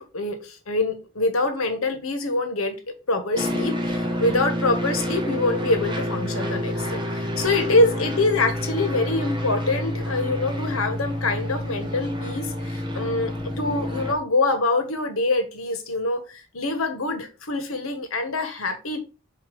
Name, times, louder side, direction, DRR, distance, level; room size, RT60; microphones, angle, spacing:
voice 1, 0.0-2.8 3.1-19.0, left 2 dB, 75° left, 1.5 m, -25 dB
sound 1, 3.4-14.1, equal, 20° right, 1.0 m, -28 dB
6.8 x 2.9 x 5.3 m
head